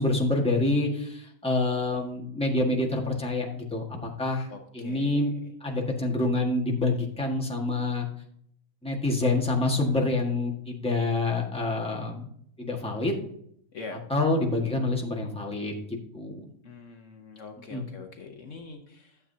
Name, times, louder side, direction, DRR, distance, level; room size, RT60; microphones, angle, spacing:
voice 1, 0.0-5.3 5.6-8.1 8.8-12.3 12.6-13.1 14.1-15.7 16.1-16.5 17.7-17.8, left 2 dB, 5° left, -1 dB, 1.5 m, -27 dB
voice 2, 4.5-5.3 13.7-14.0 16.6-19.2, left 4 dB, 60° left, 4 dB, 1.2 m, -43 dB
12.5 x 7.5 x 2.8 m, 0.68 s
omnidirectional pair, 1.5 m